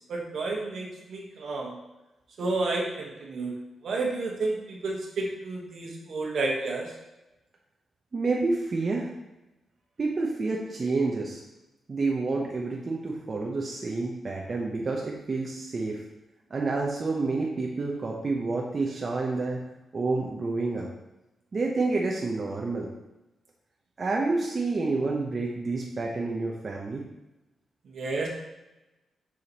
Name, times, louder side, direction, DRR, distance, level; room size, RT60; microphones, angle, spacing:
voice 1, 0.1-1.8 2.4-3.5 3.8-6.9 27.9-28.3, right 3 dB, 70° right, -1 dB, 1.3 m, -31 dB
voice 2, 8.1-9.1 10.0-11.4 11.9-16.0 16.5-19.6 19.9-20.9 21.5-22.9 24.0-27.0, right 3 dB, 40° right, -2 dB, 0.8 m, -29 dB
6.8 x 5.0 x 3.0 m, 0.99 s
cardioid pair, 110°, 0 cm